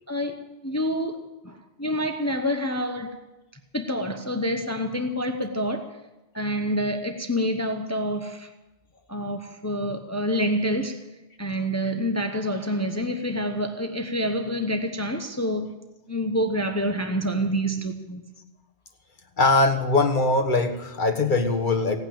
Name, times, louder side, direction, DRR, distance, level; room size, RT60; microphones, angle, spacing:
voice 1, 0.1-1.2 1.4-3.2 3.7-6.0 6.3-8.5 9.1-11.0 11.4-15.8 16.1-18.2, equal, 15° left, 0.9 m, -27 dB
voice 2, 19.4-22.0, left 3 dB, 50° left, 1.6 m, -21 dB
17.5 x 8.8 x 8.7 m
omnidirectional pair, 1.1 m